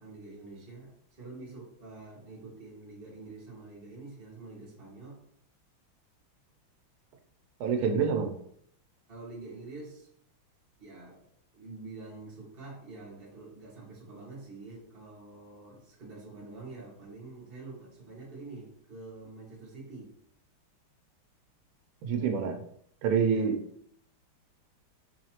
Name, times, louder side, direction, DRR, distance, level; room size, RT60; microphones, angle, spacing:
voice 1, 0.0-5.3 9.1-10.1 10.8-11.2 11.5-20.1 23.2-23.5, right 3 dB, 30° right, -4 dB, 1.3 m, -46 dB
voice 2, 7.6-8.3 22.0-22.6 23.0-23.5, right 6 dB, 90° right, 4 dB, 1.5 m, -26 dB
4.6 x 2.8 x 2.9 m, 0.68 s
omnidirectional pair, 2.3 m